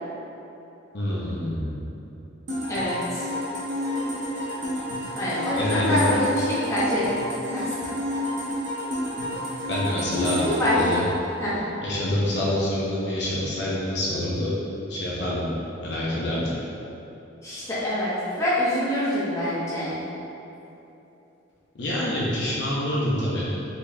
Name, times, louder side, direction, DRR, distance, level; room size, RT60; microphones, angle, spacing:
voice 1, 0.9-1.7 5.5-6.0 9.7-10.4 10.7-11.0 11.8-14.5 14.9-15.4 15.8-16.5 21.7-23.5, left 1 dB, 60° left, -6 dB, 0.7 m, -26 dB
sound 1, 2.5-12.2, left 1 dB, 65° right, 1.0 m, -30 dB
voice 2, 2.7-3.3 5.1-7.0 7.5-7.7 10.4-10.8 11.4-11.6 17.4-20.0, left 1 dB, 15° left, -10 dB, 1.0 m, -25 dB
5.1 x 4.0 x 2.3 m, 2.9 s
head